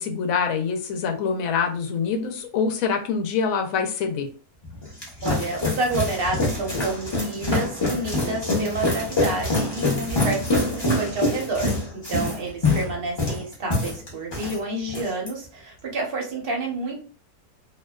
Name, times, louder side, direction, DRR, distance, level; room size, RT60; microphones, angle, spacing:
voice 1, 0.0-4.3, left 6 dB, 70° left, 4 dB, 0.9 m, -25 dB
sound 1, 4.6-14.6 14.9-15.3, left 2 dB, 25° left, 0.6 m, -25 dB
voice 2, 5.2-17.0, right 2 dB, 50° right, 0 dB, 0.7 m, -29 dB
2.5 x 2.2 x 2.2 m, 0.38 s
omnidirectional pair, 1.6 m